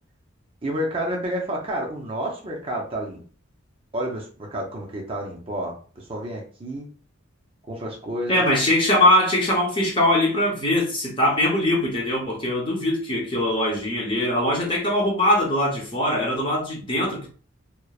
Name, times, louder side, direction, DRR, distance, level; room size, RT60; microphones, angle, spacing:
voice 1, 0.6-3.2 3.9-6.9 7.7-8.4, right 1 dB, 25° right, -2 dB, 0.5 m, -30 dB
voice 2, 8.3-17.3, left 1 dB, 25° left, -3 dB, 0.7 m, -21 dB
2.9 x 2.0 x 2.3 m, 0.39 s
head